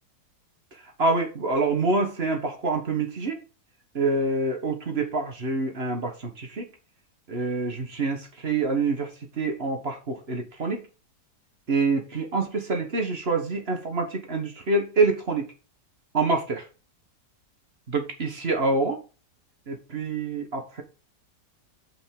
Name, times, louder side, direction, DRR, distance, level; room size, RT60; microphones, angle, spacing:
voice 1, 1.0-3.4 3.9-6.7 7.3-10.8 11.7-15.5 16.1-16.6 17.9-19.0 19.7-20.8, right 3 dB, 40° right, 1.5 m, -26 dB
5.8 x 5.4 x 5.3 m
omnidirectional pair, 1.8 m